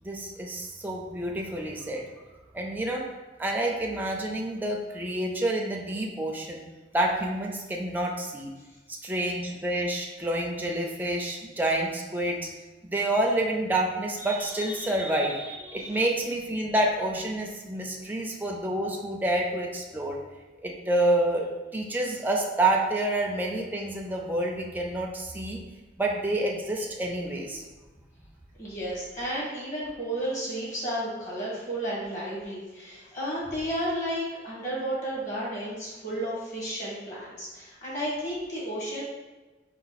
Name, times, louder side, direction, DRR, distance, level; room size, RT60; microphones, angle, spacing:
voice 1, 0.0-2.0 2.5-3.0 3.4-6.6 6.9-8.5 8.9-12.4 12.8-20.2 20.6-25.6 26.0-27.6, right 1 dB, 10° right, 0 dB, 0.4 m, -28 dB
voice 2, 28.6-39.0, right 1 dB, 45° left, -6 dB, 1.5 m, -32 dB
4.0 x 2.4 x 4.0 m, 1.2 s
head